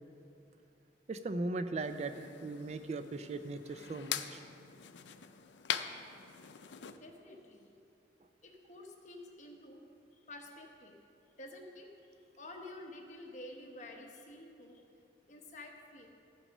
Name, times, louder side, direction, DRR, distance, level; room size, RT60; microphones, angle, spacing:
voice 1, 1.1-4.4, right 2 dB, 35° right, 9 dB, 0.4 m, -38 dB
sound 1, 1.8-7.0, left 9 dB, 90° left, 0.5 m, -42 dB
voice 2, 6.9-7.7 8.4-9.8 10.1-11.0 11.4-11.9 12.4-14.8 15.3-16.1, left 1 dB, 45° left, 1 dB, 1.2 m, -50 dB
14.5 x 6.0 x 5.4 m, 2.5 s
head